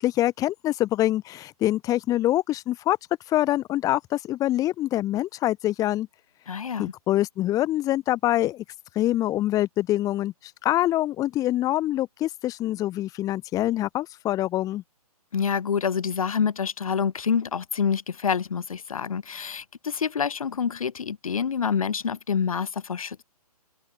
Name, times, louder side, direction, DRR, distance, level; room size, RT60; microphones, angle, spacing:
voice 1, 0.0-3.0 3.3-6.1 6.8-8.6 8.9-14.8, left 14 dB, 15° left, 4.7 m, -25 dB
voice 2, 6.5-6.9 15.3-23.2, left 6 dB, 60° left, 7.4 m, -27 dB
figure-of-eight pair, 140°, 20 cm